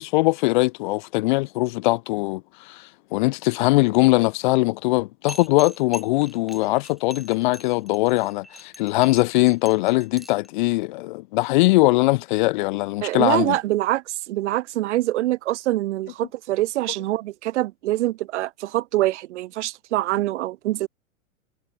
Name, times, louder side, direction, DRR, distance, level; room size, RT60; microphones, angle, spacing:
voice 1, 0.0-13.6, left 21 dB, 40° left, 0.5 m, -21 dB
sound 1, 5.3-10.5, equal, ahead, 7.8 m, -42 dB
voice 2, 13.0-20.9, right 16 dB, 60° right, 0.7 m, -24 dB
hypercardioid pair, 115°, 41 cm